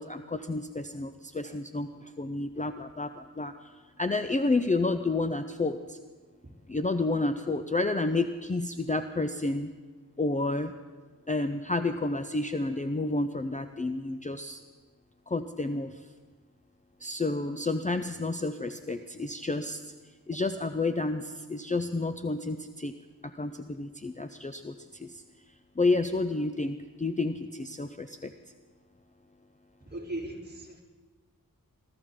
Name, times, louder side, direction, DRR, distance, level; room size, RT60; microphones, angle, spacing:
voice 1, 0.0-3.6 4.0-6.0 6.7-9.7 10.2-10.7 11.3-14.6 15.3-16.0 17.0-19.9 20.3-22.9 23.2-25.2 25.8-28.3, left 2 dB, 20° left, 8 dB, 0.5 m, -30 dB
voice 2, 29.9-30.8, right 1 dB, 25° right, -3 dB, 3.5 m, -38 dB
22.0 x 14.0 x 3.8 m, 1.4 s
wide cardioid pair, 70°, 36 cm